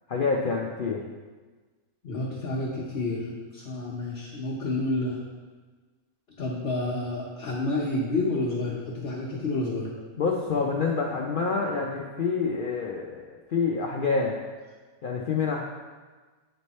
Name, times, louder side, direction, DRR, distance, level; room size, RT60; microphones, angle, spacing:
voice 1, 0.1-1.0 10.2-14.4 15.0-15.6, left 4 dB, 70° left, -1 dB, 0.5 m, -27 dB
voice 2, 2.0-5.2 6.4-9.9, left 2 dB, 50° left, -6 dB, 1.1 m, -29 dB
9.1 x 3.3 x 4.1 m, 1.4 s
omnidirectional pair, 1.5 m